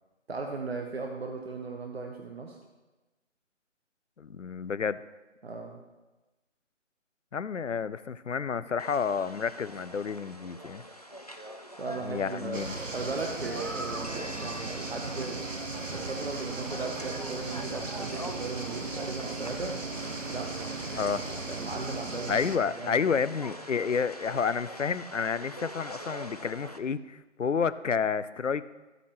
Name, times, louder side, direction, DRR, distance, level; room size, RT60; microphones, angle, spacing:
voice 1, 0.3-2.6 5.4-5.8 11.8-12.6 12.9-15.4 15.9-19.8 20.3-21.0 21.5-22.5 22.8-23.0, right 3 dB, 55° right, 2 dB, 1.1 m, -37 dB
voice 2, 4.2-5.0 7.3-10.8 12.0-12.7 20.9-21.2 22.3-28.7, left 6 dB, 75° left, 16 dB, 0.6 m, -30 dB
sound 1, 8.8-26.8, equal, 35° left, 0.4 m, -44 dB
sound 2, 12.5-22.6, right 3 dB, 85° right, 1.1 m, -37 dB
14.0 x 9.0 x 3.1 m, 1.1 s
figure-of-eight pair, 155°, 37 cm